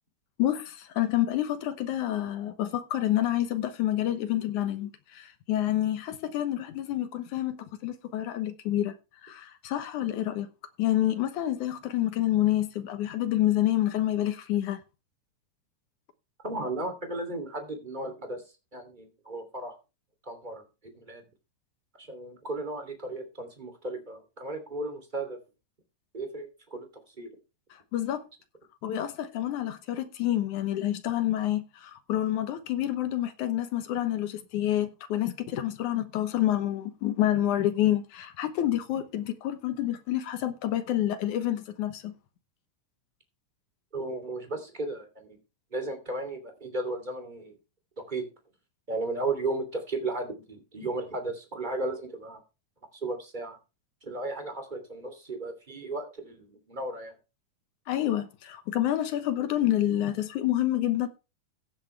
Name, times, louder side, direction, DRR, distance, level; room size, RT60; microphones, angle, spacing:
voice 1, 0.4-8.9 9.2-10.5 10.8-14.8 27.7-28.3 28.8-42.1 57.9-61.1, left 13 dB, 70° left, 2.4 m, -28 dB
voice 2, 16.4-18.4 18.7-19.7 20.3-20.6 20.9-21.2 22.0-25.4 26.1-26.8 27.2-27.3 43.9-45.4 45.7-47.5 48.1-48.2 48.9-52.4 53.0-53.6 54.0-57.1, right 2 dB, 15° right, 2.6 m, -35 dB
15.5 x 10.0 x 3.3 m
omnidirectional pair, 3.8 m